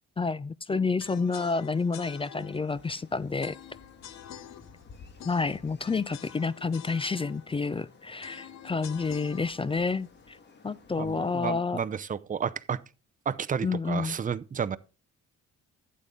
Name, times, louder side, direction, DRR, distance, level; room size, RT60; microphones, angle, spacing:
voice 1, 0.2-3.6 5.2-10.4 10.6-11.8 13.6-14.2, left 4 dB, 20° left, 0.4 m, -29 dB
sound 1, 1.0-11.1, left 10 dB, 65° left, 0.8 m, -48 dB
sound 2, 2.7-11.4, left 4 dB, 35° left, 1.6 m, -55 dB
voice 2, 11.0-12.8 13.3-14.8, right 7 dB, 25° right, 0.6 m, -31 dB
12.0 x 8.4 x 3.6 m
cardioid pair, 90°, 30 cm